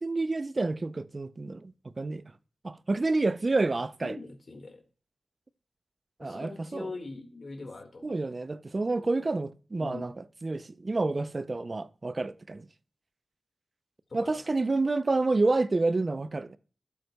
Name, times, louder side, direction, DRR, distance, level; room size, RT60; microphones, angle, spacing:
voice 1, 0.0-2.3 2.6-4.2 6.2-6.9 8.0-12.7 14.1-16.6, right 3 dB, 40° right, 0.4 m, -29 dB
voice 2, 4.0-4.8 6.2-8.1 9.8-10.1 14.1-14.4, left 3 dB, 60° left, 1.7 m, -41 dB
12.0 x 7.9 x 2.2 m
wide cardioid pair, 80°, 0 cm